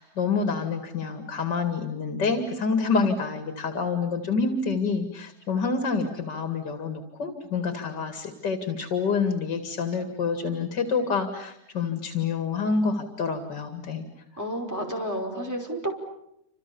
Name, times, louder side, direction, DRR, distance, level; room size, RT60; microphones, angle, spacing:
voice 1, 0.0-14.0, left 4 dB, 85° left, 7 dB, 2.8 m, -27 dB
voice 2, 14.4-15.9, right 1 dB, 10° right, 1 dB, 5.3 m, -30 dB
28.5 x 27.5 x 7.0 m, 0.79 s
omnidirectional pair, 1.8 m